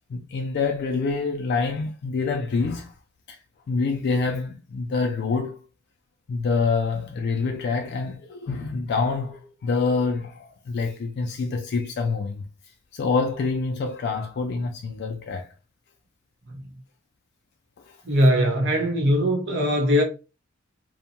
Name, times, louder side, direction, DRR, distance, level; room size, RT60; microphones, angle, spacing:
voice 1, 0.1-2.9 3.3-3.4 3.7-5.6 6.3-12.4 12.9-15.5 17.8-18.0, left 4 dB, 50° left, 0.3 m, -26 dB
voice 2, 18.1-20.0, equal, 60° right, 0.9 m, -20 dB
2.7 x 2.1 x 2.8 m
head